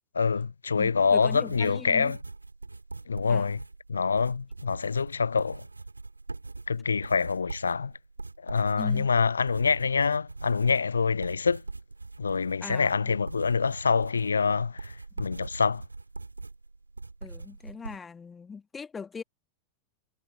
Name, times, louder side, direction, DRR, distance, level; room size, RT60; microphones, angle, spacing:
voice 1, 0.1-2.2 3.1-3.6 3.9-5.6 6.7-7.9 8.4-11.6 12.2-15.8, left 5 dB, 75° left, 0.4 m, -26 dB
voice 2, 0.8-2.1 3.3-3.5 8.8-9.1 12.6-13.2 15.2-15.3 17.2-19.2, left 5 dB, 15° left, 1.6 m, -40 dB
sound 1, 1.0-18.0, right 3 dB, 80° right, 3.3 m, -42 dB
figure-of-eight pair, 90°, 0 cm